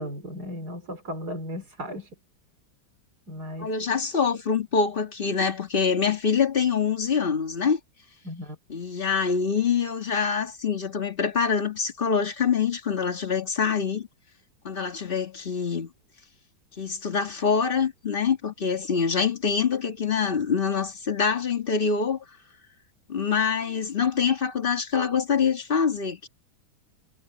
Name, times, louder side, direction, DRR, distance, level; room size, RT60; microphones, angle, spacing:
voice 1, 0.0-2.1 3.3-3.7 8.2-8.6, left 1 dB, 55° right, 4.8 m, -35 dB
voice 2, 3.6-7.8 8.7-14.1 14.6-15.9 16.8-22.2 23.1-26.3, left 6 dB, 30° left, 1.8 m, -25 dB
omnidirectional pair, 2.0 m